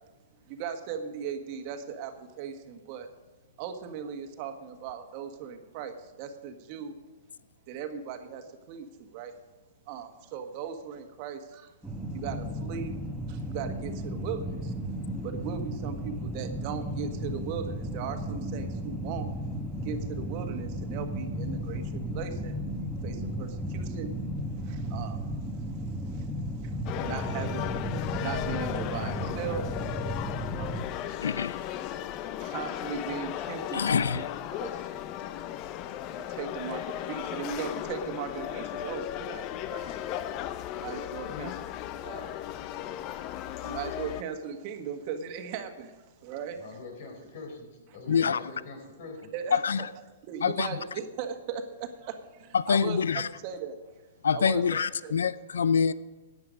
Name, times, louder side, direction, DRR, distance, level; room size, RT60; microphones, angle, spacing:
voice 1, 0.4-3.1 3.6-6.9 7.7-9.3 9.9-11.7 12.1-13.0 13.3-19.3 19.8-22.6 23.0-24.1 24.5-31.7 32.0-34.3 34.5-46.8 48.1-48.2 49.3-49.9 50.2-52.2 52.7-53.9 54.3-55.3, right 7 dB, 45° right, 1.5 m, -39 dB
sound 1, 11.8-30.8, equal, ahead, 1.1 m, -34 dB
sound 2, 26.9-44.2, left 12 dB, 35° left, 0.6 m, -36 dB
voice 2, 31.2-31.6 33.7-34.2 48.1-48.4 49.5-49.8 50.4-50.7 52.7-53.3 54.2-55.9, left 6 dB, 80° left, 0.4 m, -25 dB
voice 3, 46.5-49.3, left 3 dB, 60° left, 4.2 m, -44 dB
15.0 x 9.8 x 5.2 m
hypercardioid pair, 130°, 0 cm